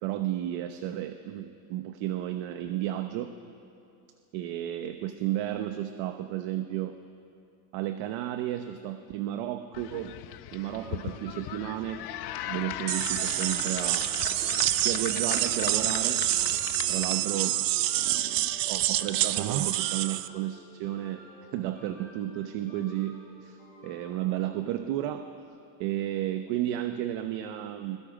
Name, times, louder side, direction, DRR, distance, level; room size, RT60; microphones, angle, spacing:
voice 1, 0.0-3.4 4.3-7.0 7.7-10.2 10.5-12.1 12.5-16.3 16.9-17.6 18.0-21.2 21.5-25.3 25.8-28.0, right 13 dB, 70° right, 8 dB, 1.1 m, -33 dB
sound 1, 9.7-17.5, left 13 dB, 55° left, 0.9 m, -39 dB
sound 2, 10.7-25.4, equal, 5° left, 6.7 m, -52 dB
sound 3, 12.9-20.3, right 14 dB, 45° right, 0.7 m, -27 dB
30.0 x 22.0 x 5.1 m, 2.7 s
cardioid pair, 160°, 47 cm